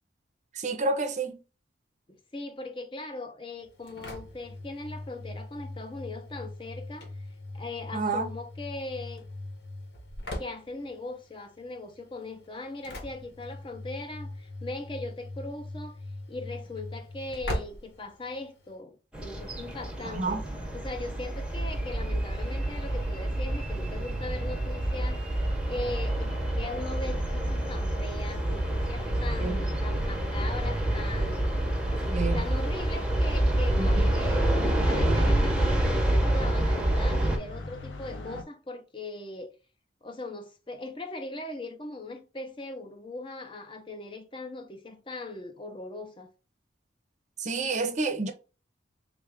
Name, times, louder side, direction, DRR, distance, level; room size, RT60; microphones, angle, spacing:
voice 1, 0.5-1.4 7.9-8.3 20.1-20.4 29.4-29.6 32.1-32.4 33.8-34.1 47.4-48.3, right 3 dB, 40° right, 0.6 m, -29 dB
voice 2, 2.3-7.1 7.5-9.3 10.4-16.0 16.3-20.4 20.7-25.2 25.7-31.7 32.3-39.5 40.0-46.3, left 2 dB, 25° left, 0.6 m, -39 dB
Engine / Slam, 3.6-18.8, left 1 dB, 70° left, 1.0 m, -41 dB
sound 1, 19.1-37.4, right 1 dB, 5° right, 0.7 m, -27 dB
sound 2, 26.1-38.4, left 2 dB, 90° left, 0.7 m, -47 dB
3.6 x 2.4 x 3.4 m
head